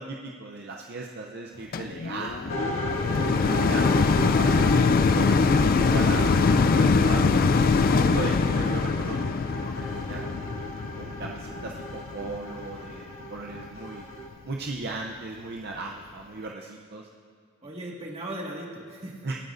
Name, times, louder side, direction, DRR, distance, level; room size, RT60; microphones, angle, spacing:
voice 1, 0.0-2.9 3.7-3.9 4.3-7.5 7.8-10.6 11.0-14.1 14.4-17.1 19.2-19.4, right 3 dB, 50° right, 0 dB, 0.6 m, -37 dB
sound 1, 1.7-13.0 13.6-13.7, left 4 dB, 40° left, 0.3 m, -23 dB
sound 2, 2.5-14.3, equal, 70° left, 1.6 m, -35 dB
voice 2, 3.3-4.1 17.6-19.3, right 1 dB, 30° right, -2 dB, 1.8 m, -39 dB
24.5 x 9.1 x 2.6 m, 2.1 s
head